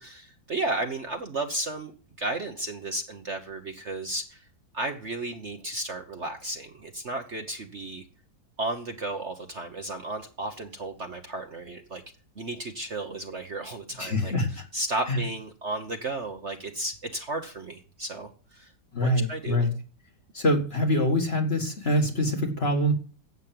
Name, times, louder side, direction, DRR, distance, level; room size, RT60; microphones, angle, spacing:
voice 1, 0.0-4.4 4.7-8.1 8.6-12.0 12.4-18.7 19.0-19.7, right 2 dB, 45° right, 5 dB, 1.2 m, -34 dB
voice 2, 14.0-14.6 15.1-15.2 18.9-19.7 20.3-22.9, left 1 dB, 35° left, 3 dB, 1.9 m, -25 dB
11.5 x 8.4 x 7.6 m, 0.40 s
omnidirectional pair, 2.0 m